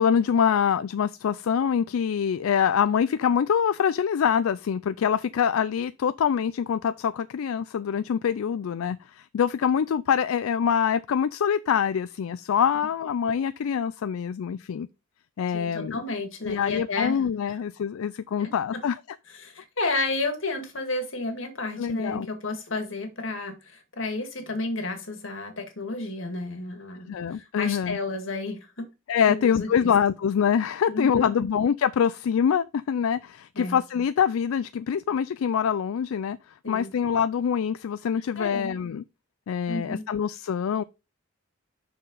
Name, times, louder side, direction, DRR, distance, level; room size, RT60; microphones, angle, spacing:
voice 1, 0.0-14.9 15.4-16.0 16.4-19.0 21.8-22.3 27.1-28.0 29.1-36.4 36.7-39.0 39.5-40.8, left 7 dB, 90° left, 0.4 m, -25 dB
voice 2, 15.5-17.2 18.3-18.5 19.3-28.9 29.3-29.9 30.9-31.5 33.5-33.8 36.6-36.9 38.4-38.8 39.7-40.1, left 2 dB, 70° left, 1.8 m, -32 dB
6.6 x 6.0 x 3.8 m
head